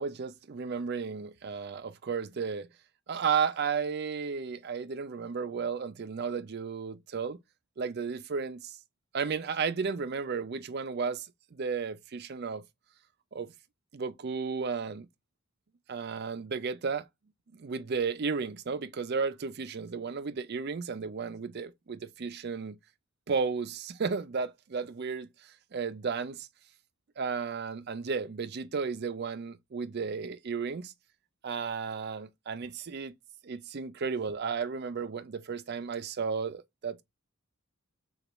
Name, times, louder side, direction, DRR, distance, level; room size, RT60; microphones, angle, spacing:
voice 1, 0.0-2.7 3.1-7.4 7.8-8.8 9.1-12.6 13.3-13.5 13.9-15.1 15.9-17.1 17.5-22.8 23.3-26.5 27.2-30.9 31.4-33.1 33.4-37.0, right 5 dB, 45° right, 0.4 m, -33 dB
6.6 x 2.4 x 3.0 m
head